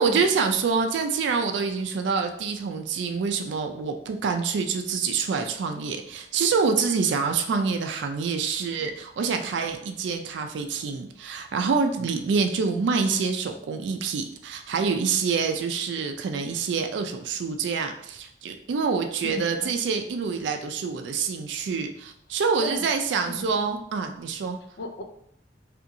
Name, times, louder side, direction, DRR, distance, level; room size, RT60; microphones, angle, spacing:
voice 1, 0.0-24.6, right 5 dB, 85° right, 5 dB, 0.3 m, -26 dB
voice 2, 19.2-19.7 22.6-22.9 23.3-23.5 24.8-25.0, left 2 dB, 75° left, 4 dB, 0.4 m, -35 dB
2.8 x 2.6 x 2.6 m, 0.69 s
head